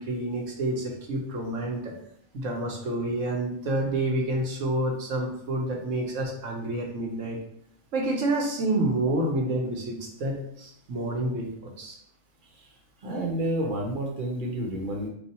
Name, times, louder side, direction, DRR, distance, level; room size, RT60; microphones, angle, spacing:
voice 1, 0.0-1.9 2.3-7.4 7.9-11.9, right 1 dB, 75° right, 0 dB, 1.3 m, -28 dB
voice 2, 13.0-15.1, right 1 dB, 45° right, -1 dB, 1.0 m, -29 dB
4.5 x 2.4 x 4.2 m, 0.70 s
omnidirectional pair, 1.3 m